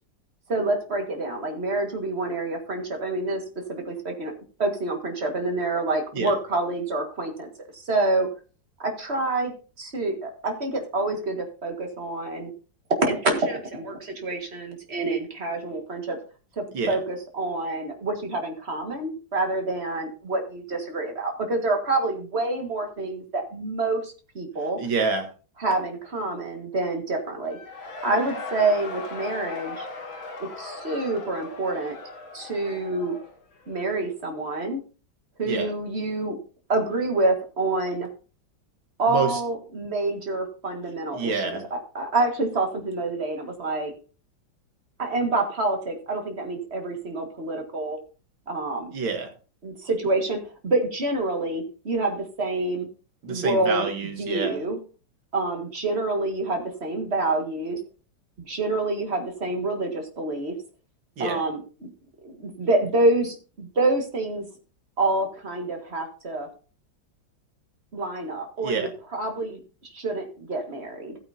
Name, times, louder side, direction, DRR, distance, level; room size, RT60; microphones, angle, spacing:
voice 1, 0.5-3.4 3.7-4.3 4.6-8.3 8.8-9.5 9.8-12.5 13.0-16.2 16.6-24.8 25.6-29.9 30.4-32.0 32.3-33.2 33.7-34.8 35.4-36.4 36.7-38.1 39.0-43.9 45.0-48.0 48.5-48.9 49.6-52.9 53.3-53.9 54.2-54.8 55.3-57.8 58.5-60.5 61.2-61.9 62.2-64.5 65.0-66.5 67.9-71.2, right 2 dB, 35° right, 4 dB, 1.9 m, -27 dB
voice 2, 24.8-25.3 35.5-35.7 39.1-39.4 41.1-41.6 48.9-49.3 53.2-54.6 61.2-61.4 68.6-68.9, right 4 dB, 85° right, 5 dB, 2.4 m, -27 dB
Cheering / Crowd, 27.4-34.2, left 3 dB, 75° left, 2.4 m, -38 dB
14.5 x 9.1 x 2.7 m, 0.36 s
omnidirectional pair, 2.1 m